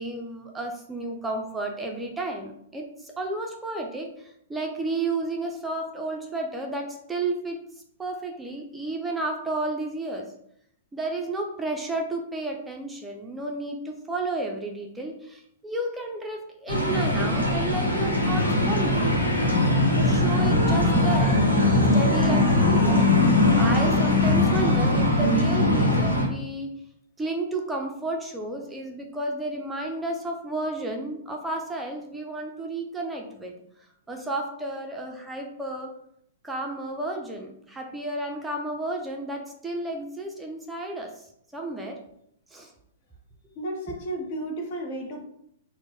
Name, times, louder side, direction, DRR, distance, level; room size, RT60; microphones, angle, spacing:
voice 1, 0.0-7.6 8.0-10.3 10.9-19.1 19.9-21.5 21.9-23.1 23.6-26.8 27.2-33.6 34.1-36.0 36.4-41.2 41.5-42.0 42.5-42.7, right 2 dB, 10° right, 0 dB, 0.4 m, -32 dB
sound 1, 16.7-26.3, left 2 dB, 85° left, 1.0 m, -21 dB
voice 2, 43.6-45.2, right 1 dB, 45° left, 3 dB, 0.8 m, -33 dB
4.2 x 2.0 x 2.9 m, 0.73 s
figure-of-eight pair, 110°, 0 cm